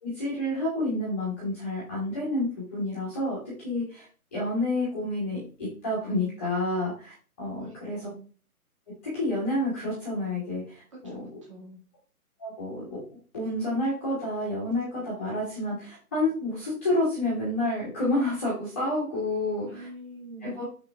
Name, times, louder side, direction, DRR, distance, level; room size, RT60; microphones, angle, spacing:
voice 1, 0.0-3.4 3.6-4.0 4.3-5.4 5.8-7.1 7.4-8.0 9.1-10.6 11.0-11.2 12.4-13.0 13.3-19.9 20.4-20.6, left 1 dB, 10° left, -7 dB, 1.3 m, -29 dB
voice 2, 7.6-8.3 10.9-11.8 19.7-20.6, right 2 dB, 20° right, -3 dB, 1.8 m, -45 dB
9.6 x 3.9 x 3.4 m, 0.38 s
hypercardioid pair, 175°, 45 cm